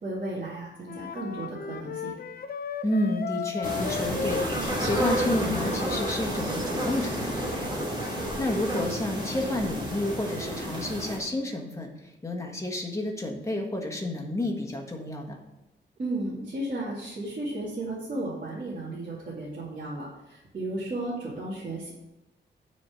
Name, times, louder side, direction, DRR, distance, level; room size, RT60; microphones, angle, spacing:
voice 1, 0.0-2.1 16.0-21.9, right 2 dB, 45° right, -8 dB, 2.4 m, -34 dB
Wind instrument woodwind instrument, 0.9-6.2, left 7 dB, 50° left, 0.6 m, -35 dB
voice 2, 2.8-15.4, left 1 dB, 15° left, 0 dB, 1.6 m, -31 dB
sound 1, 3.6-11.2, equal, 25° right, 2.6 m, -30 dB
9.6 x 4.4 x 7.1 m, 0.99 s
wide cardioid pair, 150°, 19 cm